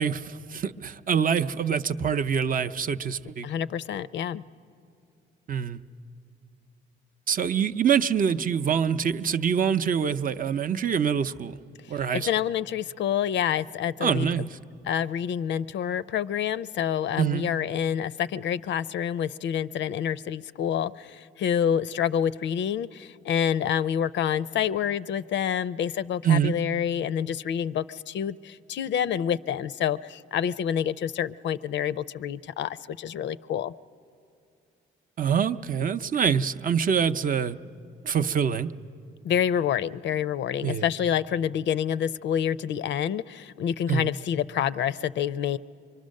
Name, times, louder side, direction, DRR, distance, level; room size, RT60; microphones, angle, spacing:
voice 1, 0.0-3.5 5.5-5.8 7.3-11.6 11.9-12.3 14.0-14.5 17.2-17.5 26.2-26.5 35.2-37.6 38.0-38.7 40.6-40.8 43.9-44.1, right 7 dB, 45° right, 9 dB, 0.6 m, -25 dB
voice 2, 3.4-4.4 11.9-14.3 14.9-33.7 39.2-45.6, left 9 dB, 65° left, 16 dB, 0.4 m, -27 dB
24.0 x 23.5 x 6.4 m, 2.4 s
cardioid pair, 90°, 20 cm